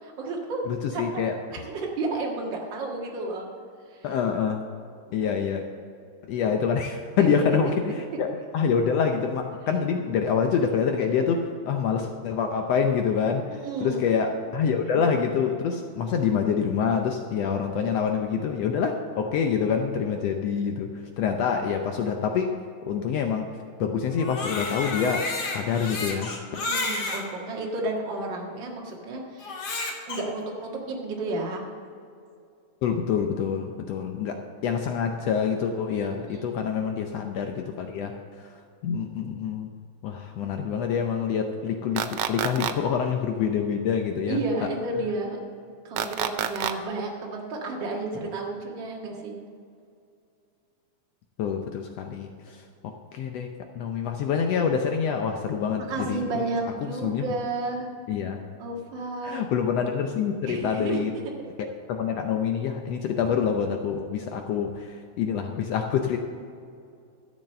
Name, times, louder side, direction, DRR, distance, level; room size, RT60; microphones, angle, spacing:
voice 1, 0.0-0.6 0.9-1.2 1.5-3.5 3.9-4.1 5.1-5.2 7.2-7.4 13.5-14.0 26.5-29.8 30.1-31.6 36.3-36.5 44.3-45.4 45.8-49.4 55.9-57.9 58.6-59.4 60.5-61.2, right 2 dB, 45° right, -1 dB, 2.1 m, -32 dB
voice 2, 0.7-1.6 4.0-4.6 5.1-5.7 6.3-22.5 22.8-23.5 23.8-25.3 25.5-26.3 32.8-38.6 38.8-39.7 40.0-44.4 51.4-52.6 53.1-56.5 56.8-57.3 58.1-58.4 59.2-61.1 61.6-66.2, left 6 dB, 75° left, 4 dB, 1.6 m, -26 dB
Crying sobbing, 24.1-27.2 28.0-28.1 29.4-30.2, left 3 dB, 50° left, 1.4 m, -31 dB
sound 1, 42.0-42.7 46.0-46.7, right 10 dB, 90° right, 1.3 m, -27 dB
12.5 x 7.4 x 6.6 m, 2.4 s
omnidirectional pair, 3.4 m